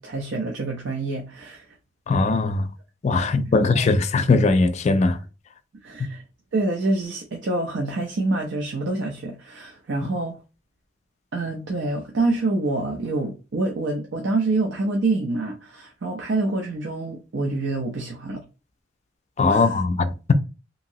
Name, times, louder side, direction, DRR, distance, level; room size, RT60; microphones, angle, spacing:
voice 1, 0.0-1.8 3.2-4.0 5.8-6.2 6.5-10.4 11.3-18.4 19.5-19.8, right 2 dB, 65° right, 0.5 m, -27 dB
voice 2, 2.1-2.7 3.0-5.2 6.0-6.1 19.4-20.3, left 3 dB, 35° left, 0.3 m, -20 dB
2.8 x 2.8 x 2.7 m
head